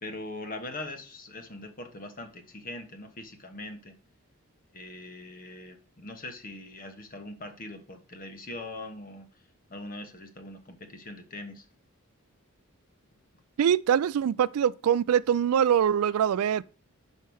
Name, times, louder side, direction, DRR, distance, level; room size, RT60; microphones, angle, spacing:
voice 1, 0.0-3.9 4.7-9.3 9.7-11.6, left 2 dB, 40° left, 1.2 m, -41 dB
voice 2, 13.6-16.6, right 9 dB, 80° right, 0.3 m, -23 dB
5.6 x 5.4 x 6.3 m
head